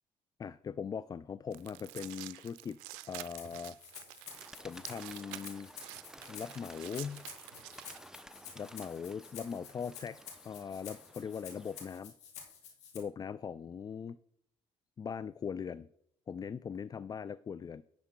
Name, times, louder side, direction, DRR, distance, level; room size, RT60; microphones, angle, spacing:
voice 1, 0.4-2.8 3.0-3.8 4.6-5.7 6.3-7.2 8.6-10.2 10.4-12.1 12.9-14.2 15.0-15.9 16.3-17.8, left 6 dB, 30° left, 17 dB, 0.3 m, -40 dB
sound 1, 1.5-8.0, right 16 dB, 85° right, 0.4 m, -49 dB
Rattle (instrument), 3.4-13.0, left 7 dB, 70° left, 2.1 m, -51 dB
Bird, 4.3-12.0, right 1 dB, 5° right, 0.7 m, -55 dB
10.0 x 4.3 x 5.8 m, 0.71 s
hypercardioid pair, 60°, 12 cm